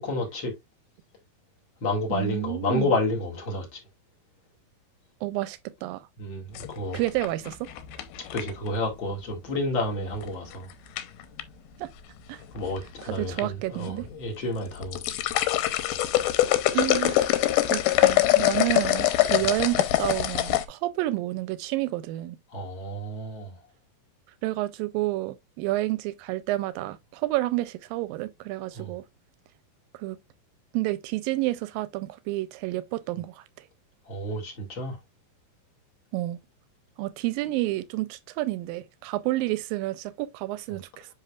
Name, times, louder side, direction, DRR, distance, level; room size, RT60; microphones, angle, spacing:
voice 1, 0.0-0.5 1.8-3.8 6.2-7.0 8.3-10.7 12.5-15.0 22.5-23.5 28.7-28.9 34.1-35.0 40.7-40.8, left 1 dB, 40° left, 2.2 m, -30 dB
voice 2, 2.1-2.9 5.2-6.0 6.9-7.7 11.8-11.9 12.3-12.4 13.0-14.1 16.7-17.4 17.7-22.4 24.4-29.0 29.9-30.2 30.7-33.4 36.1-36.4 37.0-41.1, right 17 dB, 80° right, 2.2 m, -30 dB
sound 1, 6.5-8.7 10.2-10.5 11.0-11.4 12.3-12.9 13.2-13.4 13.9-14.0 14.6-20.6, left 14 dB, 90° left, 2.7 m, -24 dB
10.0 x 4.0 x 2.3 m
omnidirectional pair, 4.3 m